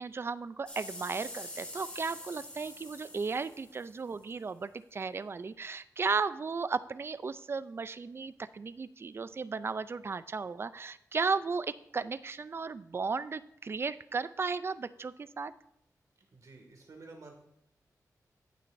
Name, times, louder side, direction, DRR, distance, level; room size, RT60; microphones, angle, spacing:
voice 1, 0.0-15.5, right 4 dB, 40° right, 15 dB, 0.4 m, -35 dB
sound 1, 0.7-4.3 5.0-5.1, left 1 dB, 15° left, 1.9 m, -45 dB
voice 2, 16.3-17.3, right 3 dB, 60° right, 2 dB, 2.0 m, -51 dB
17.0 x 6.2 x 2.6 m, 0.76 s
wide cardioid pair, 125°, 7 cm